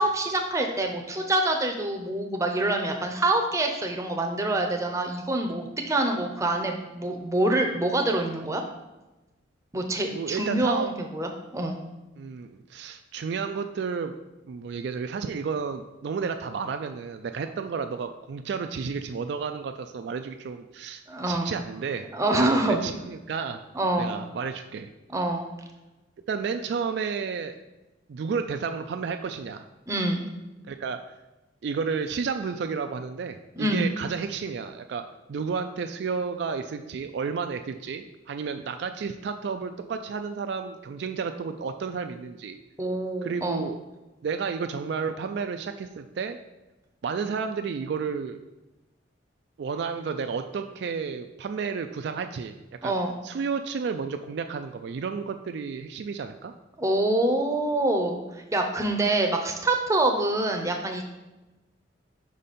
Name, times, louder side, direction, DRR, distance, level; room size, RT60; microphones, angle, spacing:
voice 1, 0.0-8.6 9.7-11.8 21.1-21.5 22.1-22.8 23.7-24.1 25.1-25.4 29.9-30.3 33.6-33.9 42.8-43.6 52.8-53.2 56.8-58.2 58.5-61.0, right 2 dB, 15° right, 3 dB, 0.7 m, -26 dB
voice 2, 10.1-10.9 12.2-14.1 14.5-21.0 21.3-22.1 22.4-23.6 24.0-24.9 26.3-27.5 28.1-29.7 30.7-31.0 31.6-35.0 35.3-42.6 43.2-43.8 44.2-46.4 47.0-48.4 49.6-52.5 52.8-52.9 53.2-56.5, right 5 dB, 60° right, 7 dB, 0.3 m, -31 dB
5.4 x 5.1 x 4.2 m, 1.0 s
head